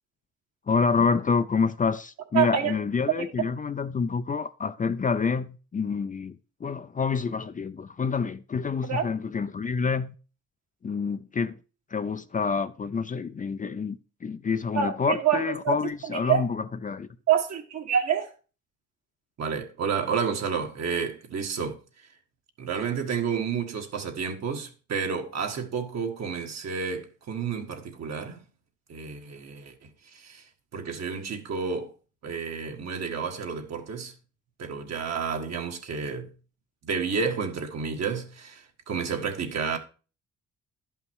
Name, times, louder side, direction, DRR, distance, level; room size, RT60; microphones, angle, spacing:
voice 1, 0.7-10.1 10.8-11.6 11.9-17.1, left 5 dB, 25° left, 0.5 m, -28 dB
voice 2, 2.3-2.7 3.2-3.3 8.9-9.1 14.8-16.5 17.3-18.3 19.4-21.8 22.6-28.4 28.9-30.4 30.7-31.9 32.2-34.1 34.6-36.3 36.8-39.8, right 7 dB, 60° right, 1.8 m, -29 dB
11.0 x 5.5 x 4.6 m
cardioid pair, 90°, 30 cm